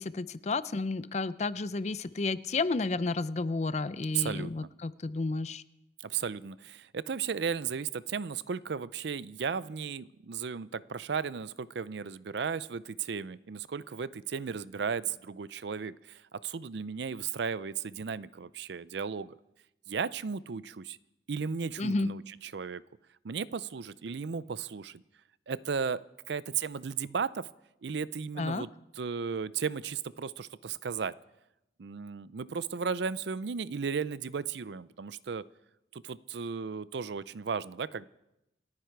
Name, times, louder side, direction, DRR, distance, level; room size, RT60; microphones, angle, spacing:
voice 1, 0.0-5.6 21.8-22.1 28.4-28.6, left 3 dB, 40° left, 16 dB, 0.5 m, -31 dB
voice 2, 4.1-4.7 6.0-19.3 19.9-21.0 21.3-22.8 23.2-25.0 25.5-26.0 26.3-27.4 27.8-31.2 31.8-35.4 35.9-38.0, right 6 dB, 70° right, 18 dB, 0.5 m, -35 dB
28.5 x 9.7 x 4.6 m, 0.90 s
head